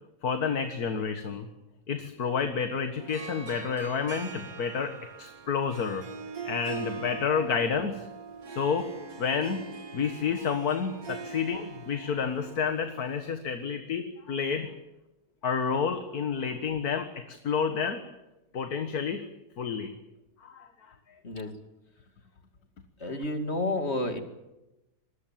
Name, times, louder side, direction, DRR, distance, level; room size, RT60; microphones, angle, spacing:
voice 1, 0.2-1.5 1.9-6.1 6.4-8.1 8.5-8.9 9.2-9.6 9.9-14.7 15.4-18.0 18.5-19.2 19.6-19.9 20.4-20.9, left 6 dB, 70° left, 7 dB, 2.0 m, -30 dB
Harp, 3.0-13.3, right 5 dB, 65° right, 2.7 m, -42 dB
voice 2, 23.0-24.2, left 2 dB, 40° left, 6 dB, 2.8 m, -30 dB
26.5 x 22.0 x 7.6 m, 0.97 s
omnidirectional pair, 1.7 m